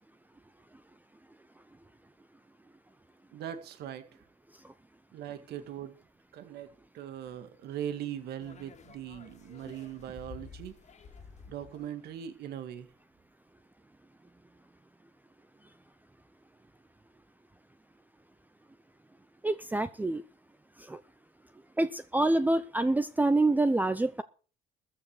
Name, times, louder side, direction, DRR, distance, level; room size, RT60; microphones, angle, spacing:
voice 1, 3.3-4.1 5.1-6.0 6.3-10.7 11.5-12.9, right 10 dB, 75° right, 1.8 m, -40 dB
sound 1, 8.4-12.2, left 6 dB, 40° left, 2.2 m, -51 dB
voice 2, 19.4-20.2 20.8-21.0 21.8-24.2, right 2 dB, 10° right, 0.7 m, -26 dB
14.0 x 6.3 x 8.3 m
cardioid pair, 110°, 17 cm